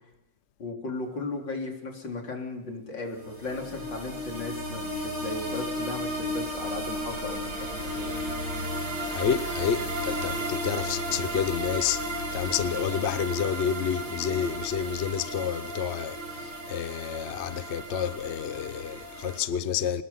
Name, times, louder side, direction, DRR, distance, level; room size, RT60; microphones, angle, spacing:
voice 1, 0.6-8.2, left 3 dB, 85° left, 4.4 m, -36 dB
sound 1, 3.2-19.4, equal, 90° right, 6.0 m, -34 dB
voice 2, 9.0-20.0, left 8 dB, 50° left, 0.9 m, -29 dB
25.0 x 20.5 x 5.7 m
omnidirectional pair, 1.9 m